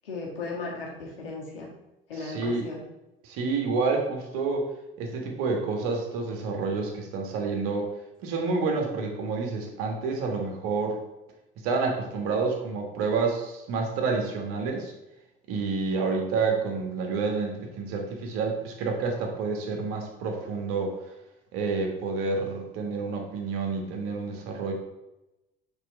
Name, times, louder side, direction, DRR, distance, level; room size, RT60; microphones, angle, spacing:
voice 1, 0.0-1.7 2.1-2.8, left 3 dB, 70° left, -2 dB, 1.7 m, -36 dB
voice 2, 2.1-2.6 3.2-4.7 5.0-7.9 8.2-11.0 11.6-14.9 15.5-20.9 21.5-24.7, right 4 dB, 50° right, 2 dB, 1.4 m, -29 dB
6.6 x 3.6 x 4.7 m, 0.94 s
figure-of-eight pair, 65°, 29 cm